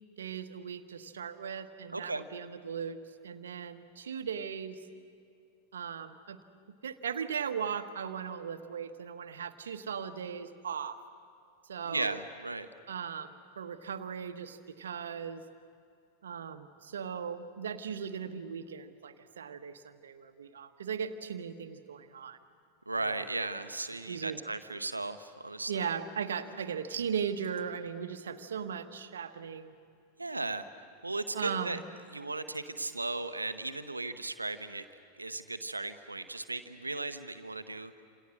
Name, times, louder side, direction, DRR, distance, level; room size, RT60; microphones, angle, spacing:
voice 1, 0.2-3.0 3.2-4.8 5.7-6.4 6.8-11.0 11.7-12.2 12.9-15.4 16.2-22.4 23.2-23.3 24.1-24.4 25.7-29.7 31.3-31.8, right 7 dB, 65° right, 9 dB, 1.3 m, -38 dB
voice 2, 1.9-2.2 11.8-12.7 22.9-25.9 30.2-30.7 31.0-31.8 32.1-34.8 35.2-38.0, right 2 dB, 80° right, 10 dB, 1.0 m, -36 dB
28.5 x 27.0 x 6.4 m, 2.5 s
figure-of-eight pair, 90°, 0 cm